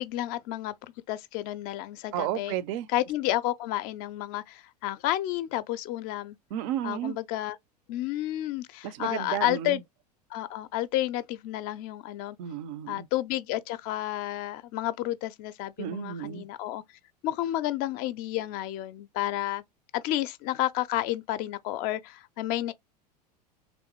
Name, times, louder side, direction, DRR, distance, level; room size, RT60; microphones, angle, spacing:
voice 1, 0.0-2.5 2.9-6.4 6.8-7.6 7.9-9.8 10.3-12.4 12.9-16.8 17.2-19.6 19.9-22.7, left 14 dB, 40° left, 0.4 m, -31 dB
voice 2, 2.1-2.9 6.5-7.2 8.8-9.8 12.4-13.1 15.8-16.4, right 11 dB, 50° right, 0.5 m, -32 dB
3.4 x 3.0 x 2.9 m
figure-of-eight pair, 80°, 21 cm